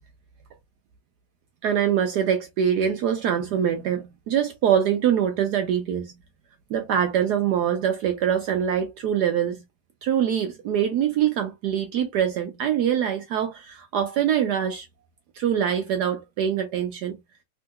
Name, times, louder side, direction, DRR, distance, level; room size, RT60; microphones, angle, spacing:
voice 1, 1.6-6.1 6.7-9.6 10.0-14.9 15.4-17.2, right 9 dB, 75° right, 0.9 m, -24 dB
3.6 x 2.7 x 2.3 m
omnidirectional pair, 2.2 m